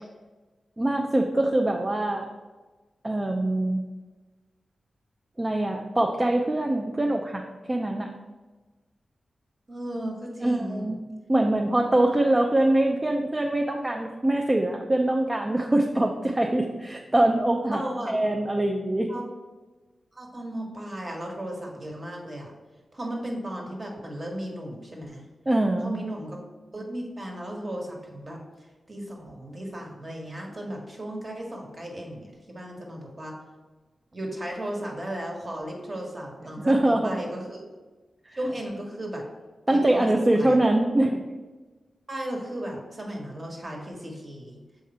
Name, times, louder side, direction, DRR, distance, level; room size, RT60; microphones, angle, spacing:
voice 1, 0.8-2.3 3.0-3.8 5.4-7.4 7.7-8.1 10.4-11.0 11.3-17.8 18.1-19.1 25.5-25.9 36.6-37.2 39.7-41.2, right 1 dB, 25° right, 2 dB, 0.5 m, -23 dB
voice 2, 9.7-10.9 17.7-18.1 19.1-19.2 20.1-22.5 22.9-25.2 25.8-26.4 26.7-28.4 28.9-33.3 34.1-37.6 38.4-39.2 39.7-40.1 40.3-40.6 42.1-44.6, right 1 dB, 40° right, 0 dB, 1.5 m, -35 dB
6.6 x 3.5 x 4.2 m, 1.3 s
cardioid pair, 60°, 0 cm